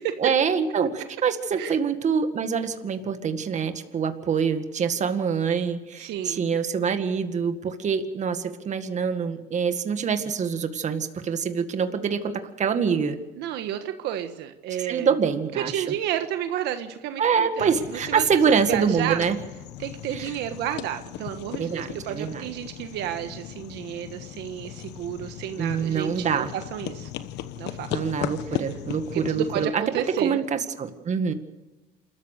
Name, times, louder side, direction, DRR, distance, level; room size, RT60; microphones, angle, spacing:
voice 1, 0.2-12.3 12.6-13.2 14.8-15.9 17.2-19.4 20.1-20.3 21.6-22.5 25.6-26.5 27.9-29.8 30.2-31.3, right 6 dB, 45° right, 8 dB, 1.9 m, -25 dB
voice 2, 6.0-6.4 13.4-15.1 15.6-19.2 19.8-27.1 27.6-27.9 28.5-28.6 29.1-30.4, right 11 dB, 85° right, 8 dB, 1.5 m, -31 dB
sound 1, 17.6-29.7, left 11 dB, 90° left, 1.1 m, -37 dB
28.0 x 14.0 x 6.7 m, 1.1 s
cardioid pair, 110°, 17 cm